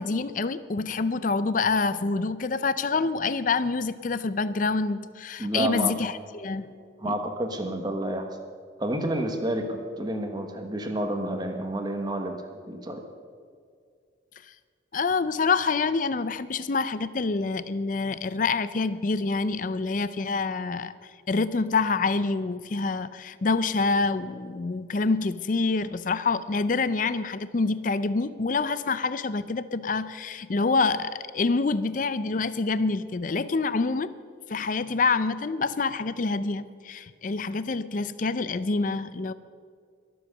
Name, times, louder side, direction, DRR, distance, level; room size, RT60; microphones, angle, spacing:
voice 1, 0.0-7.2 14.9-34.1 34.5-39.3, left 4 dB, 45° left, 14 dB, 0.5 m, -27 dB
voice 2, 5.4-5.9 7.0-8.3 8.8-12.4 12.7-13.0, right 1 dB, 20° right, 5 dB, 1.3 m, -29 dB
22.0 x 7.8 x 6.6 m, 2.1 s
head